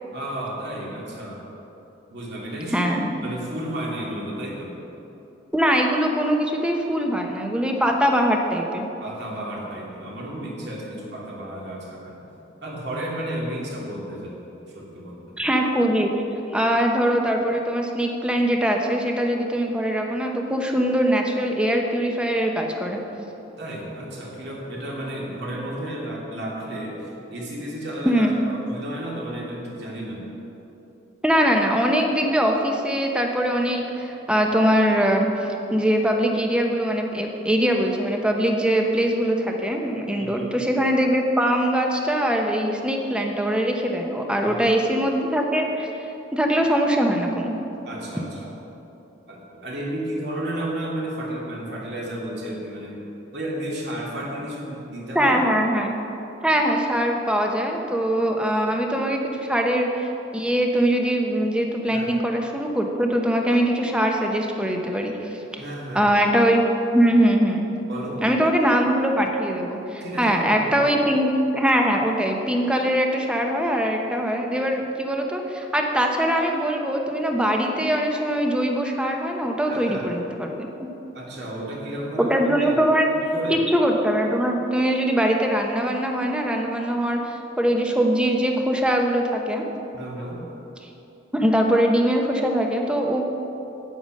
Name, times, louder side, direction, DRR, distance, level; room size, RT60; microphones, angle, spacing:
voice 1, 0.1-1.4 2.1-2.9 3.2-4.8 9.0-12.3 12.6-15.4 23.6-30.2 40.2-40.5 44.4-44.8 47.8-48.5 49.3-53.0 53.3-55.4 61.9-62.1 65.6-66.1 67.9-68.4 70.0-70.9 79.7-80.1 81.1-82.4 82.6-82.8 83.1-83.7 89.9-90.4, right 1 dB, 60° right, -3 dB, 2.4 m, -33 dB
voice 2, 2.7-3.1 5.5-8.9 15.4-16.1 16.5-23.0 28.0-28.3 31.2-45.9 46.3-47.5 55.1-55.9 56.4-65.6 65.9-67.6 68.2-80.9 82.2-83.1 83.5-89.6 91.3-93.2, equal, 5° right, 2 dB, 0.9 m, -22 dB
9.3 x 8.9 x 6.4 m, 3.0 s
head